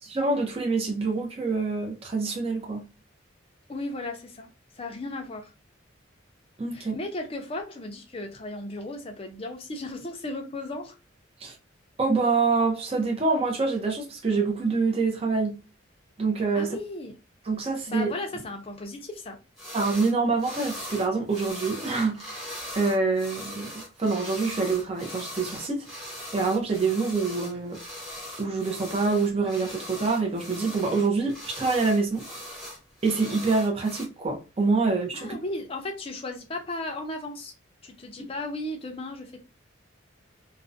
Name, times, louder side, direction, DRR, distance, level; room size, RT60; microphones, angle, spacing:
voice 1, 0.1-2.8 6.6-7.0 11.4-11.5 12.0-15.5 16.2-16.8 17.5-18.1 19.7-22.3 22.7-23.7 24.0-25.9 26.3-27.8 28.4-32.2 33.0-35.3, right 4 dB, 30° right, 0.5 m, -26 dB
voice 2, 3.7-4.5 4.8-5.5 6.7-11.0 16.5-17.2 17.9-19.4 35.1-37.5 37.8-39.4, left 2 dB, 30° left, 0.4 m, -35 dB
sound 1, 19.6-20.1 20.4-34.0, equal, ahead, 0.8 m, -40 dB
2.4 x 2.0 x 2.5 m
head